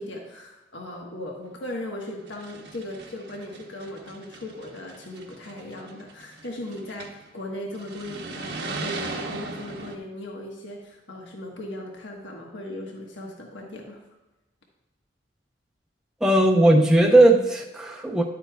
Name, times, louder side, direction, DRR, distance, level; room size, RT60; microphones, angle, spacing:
voice 1, 0.0-14.0, left 1 dB, 80° left, 0 dB, 1.4 m, -37 dB
sound 1, 1.5-1.6 2.2-7.3 7.7-10.0, right 3 dB, 60° right, 1.0 m, -38 dB
voice 2, 16.2-18.2, right 1 dB, 5° right, -1 dB, 0.7 m, -17 dB
11.0 x 8.3 x 2.3 m, 1.1 s
head